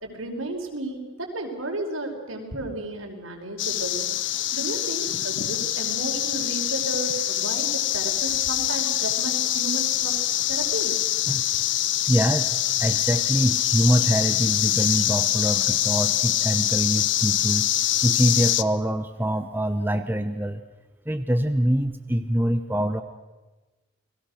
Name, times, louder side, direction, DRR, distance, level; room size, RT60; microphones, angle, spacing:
voice 1, 0.0-4.1 4.5-10.2 10.5-10.9, right 2 dB, 80° right, 2 dB, 5.1 m, -33 dB
sound 1, 3.6-18.6, left 13 dB, 60° left, 0.7 m, -24 dB
voice 2, 12.1-17.7 18.0-20.6 21.1-23.0, equal, 10° right, 8 dB, 0.9 m, -24 dB
30.0 x 21.5 x 6.5 m, 1.2 s
head